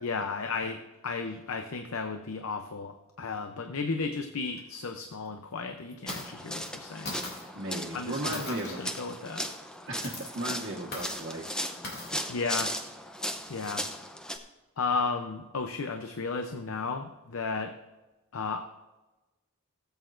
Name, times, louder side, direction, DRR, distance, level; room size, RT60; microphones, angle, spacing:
voice 1, 0.0-7.1 7.9-9.5 12.3-12.7 13.5-13.9 14.8-17.7 18.3-18.6, left 4 dB, 80° left, 6 dB, 0.7 m, -34 dB
sound 1, 4.5-4.6 5.0-5.1 5.9-6.3 6.6-6.7 7.1-7.5 8.3-8.9 9.9-10.3 10.9-11.2 11.8-12.1, left 2 dB, 50° left, 2.8 m, -39 dB
sound 2, 6.1-14.4, equal, 5° left, 0.7 m, -37 dB
voice 2, 7.5-8.8 9.9-11.6, right 1 dB, 60° right, -3 dB, 1.4 m, -35 dB
17.5 x 8.2 x 2.6 m, 1.1 s
head